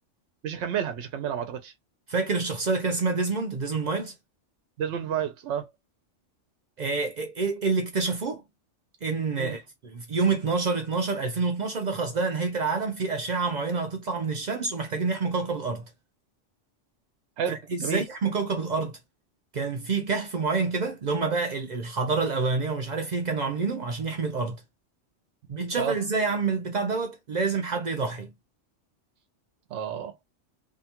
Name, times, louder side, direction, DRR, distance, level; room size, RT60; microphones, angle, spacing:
voice 1, 0.4-1.7 4.8-5.7 9.4-9.5 17.4-18.1 25.8-26.0 29.7-30.2, right 8 dB, 70° right, 0.9 m, -30 dB
voice 2, 2.1-4.1 6.8-8.4 9.0-15.8 17.5-19.0 19.5-24.6 25.5-28.3, right 4 dB, 55° right, 0.5 m, -27 dB
2.7 x 2.2 x 2.8 m
omnidirectional pair, 1.2 m